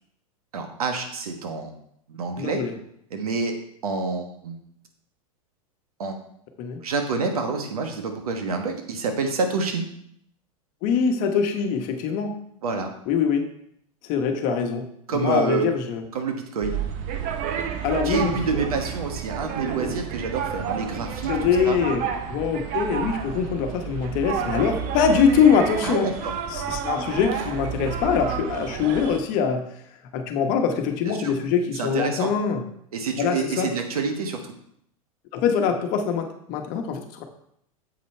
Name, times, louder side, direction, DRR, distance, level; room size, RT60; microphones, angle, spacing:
voice 1, 0.5-1.7 2.1-2.6 3.1-3.5 3.8-4.6 6.0-6.2 6.8-9.8 12.6-12.9 15.1-15.7 16.1-16.8 18.0-21.3 21.6-21.8 25.8-26.3 31.1-31.3 31.7-32.3 32.9-34.5, right 4 dB, 80° right, 5 dB, 1.4 m, -27 dB
voice 2, 2.4-2.7 6.6-6.8 10.8-12.3 13.1-13.4 14.1-14.8 15.1-16.0 17.8-18.3 21.3-26.1 26.5-29.6 30.1-32.6 33.2-33.7 35.3-37.2, left 6 dB, 50° left, 5 dB, 1.2 m, -23 dB
sound 1, 16.6-29.2, right 8 dB, 45° right, 0.8 m, -30 dB
7.5 x 5.4 x 4.5 m, 0.72 s
hypercardioid pair, 100°, 19 cm